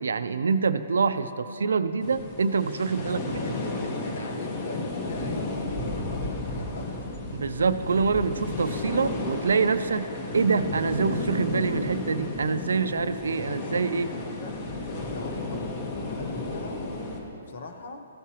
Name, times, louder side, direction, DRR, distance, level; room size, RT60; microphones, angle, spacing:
voice 1, 0.0-3.4 7.3-10.1 10.3-14.1, right 5 dB, 90° right, 12 dB, 0.4 m, -25 dB
sound 1, 2.0-17.2, left 2 dB, 40° left, 1.3 m, -33 dB
voice 2, 2.9-6.9 13.2-13.5 14.1-14.7 15.1-16.8 17.3-18.1, left 4 dB, 65° left, 6 dB, 1.0 m, -42 dB
15.5 x 8.3 x 3.0 m, 2.8 s
hypercardioid pair, 150°, 0 cm